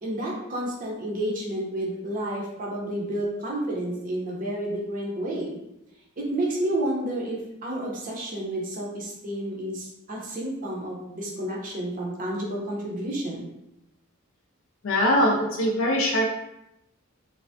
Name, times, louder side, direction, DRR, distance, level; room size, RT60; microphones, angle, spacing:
voice 1, 0.0-5.5 6.2-13.4, right 1 dB, 40° right, -3 dB, 0.6 m, -30 dB
voice 2, 14.8-16.3, equal, 65° left, -1 dB, 0.4 m, -22 dB
3.2 x 2.0 x 2.6 m, 0.87 s
head